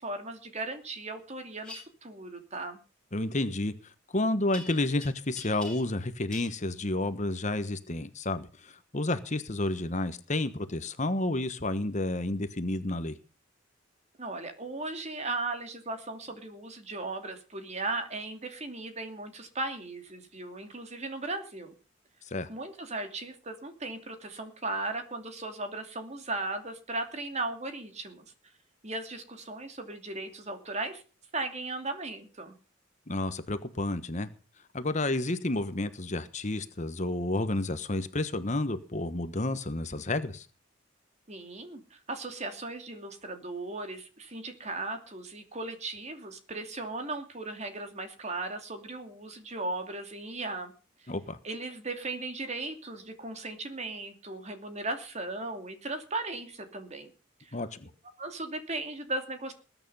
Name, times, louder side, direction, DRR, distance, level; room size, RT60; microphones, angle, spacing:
voice 1, 0.0-2.8 14.2-21.7 22.5-28.2 28.8-31.0 31.3-32.6 41.3-50.7 51.4-57.1 57.4-57.6 58.2-59.5, right 2 dB, 35° right, 6 dB, 2.6 m, -37 dB
sound 1, 1.6-1.8 4.5-5.1 5.4-6.0 6.3-6.5, left 3 dB, 5° left, 6.6 m, -44 dB
voice 2, 3.1-13.2 22.3-22.5 33.1-34.3 34.7-40.5 51.1-51.4 57.5-57.9, left 2 dB, 40° left, 11 dB, 1.2 m, -31 dB
20.5 x 9.3 x 5.6 m, 0.36 s
head